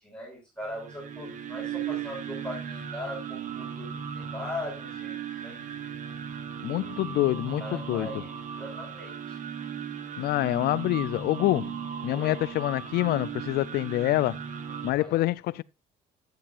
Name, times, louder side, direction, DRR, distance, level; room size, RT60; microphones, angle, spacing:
voice 1, 0.0-5.6 6.7-7.2 7.6-9.4 12.1-12.4 15.0-15.2, left 1 dB, 5° left, 5.4 m, -40 dB
sound 1, 0.6-14.9, right 7 dB, 50° right, 1.3 m, -37 dB
voice 2, 6.6-8.1 10.2-14.4 14.8-15.6, left 16 dB, 70° left, 0.5 m, -26 dB
11.0 x 9.4 x 2.6 m
cardioid pair, 110°, 17 cm